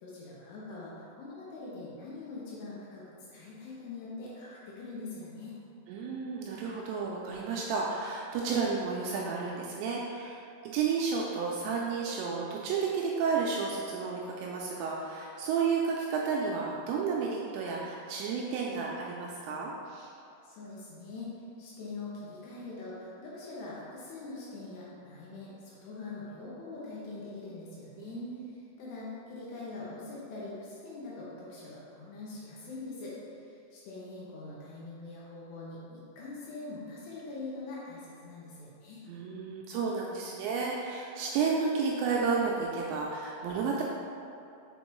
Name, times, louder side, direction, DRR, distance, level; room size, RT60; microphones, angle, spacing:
voice 1, 0.0-3.0 3.3-5.6 20.4-21.3 21.6-28.2 28.8-33.1 33.7-39.0, left 3 dB, 75° left, -7 dB, 2.8 m, -43 dB
voice 2, 5.9-10.4 10.6-20.1 28.0-28.5 39.1-43.8, right 5 dB, 85° right, -2 dB, 2.6 m, -32 dB
7.0 x 4.4 x 3.0 m, 2.6 s
omnidirectional pair, 5.4 m